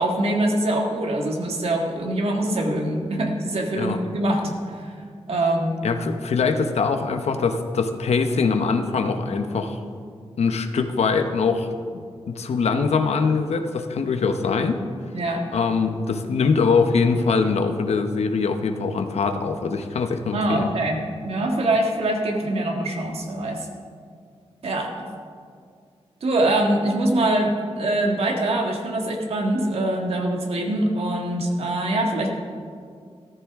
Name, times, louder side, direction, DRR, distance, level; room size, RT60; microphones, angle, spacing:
voice 1, 0.0-4.5 4.8-4.9 5.3-5.8 15.1-15.4 20.3-23.7 24.6-24.9 26.2-32.3, right 1 dB, 70° right, 1 dB, 1.8 m, -23 dB
voice 2, 5.8-9.8 10.4-14.8 15.5-20.7, left 4 dB, 90° left, 7 dB, 0.9 m, -23 dB
14.5 x 14.0 x 3.6 m, 2.2 s
wide cardioid pair, 135°, 11 cm